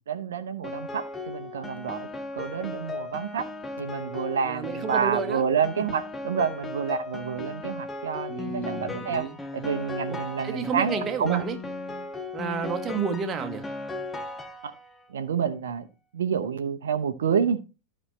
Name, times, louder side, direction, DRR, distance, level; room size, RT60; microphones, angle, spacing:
voice 1, 0.1-2.1 2.3-3.4 3.8-9.3 9.5-11.4 15.1-15.9 16.1-17.6, right 7 dB, 65° right, 0.8 m, -28 dB
Piano, 0.6-15.0, left 3 dB, 15° left, 0.8 m, -37 dB
voice 2, 4.4-5.4 8.3-9.3 10.1-10.2 10.4-11.6 12.3-13.6, right 6 dB, 25° right, 1.3 m, -31 dB
12.5 x 5.4 x 3.1 m
figure-of-eight pair, 90°, 0 cm